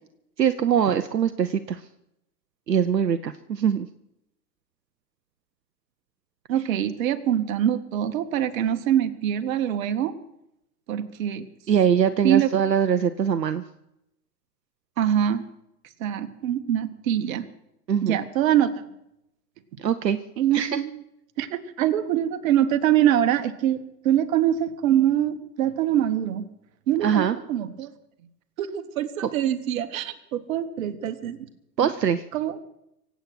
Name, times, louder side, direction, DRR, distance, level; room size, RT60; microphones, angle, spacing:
voice 1, 0.4-1.8 2.7-3.9 11.7-13.6 17.9-18.2 19.8-20.2 20.5-20.9 27.0-27.4 31.8-32.2, right 8 dB, 85° right, 11 dB, 0.7 m, -22 dB
voice 2, 6.5-10.1 10.9-11.4 12.2-12.5 15.0-15.4 16.0-17.5 18.0-18.7 20.4-21.0 21.4-26.4 26.9-27.9 28.6-31.4 31.8-31.9 32.3-32.5, right 11 dB, 55° right, 10 dB, 1.4 m, -24 dB
24.5 x 8.3 x 6.1 m, 0.84 s
figure-of-eight pair, 95°, 48 cm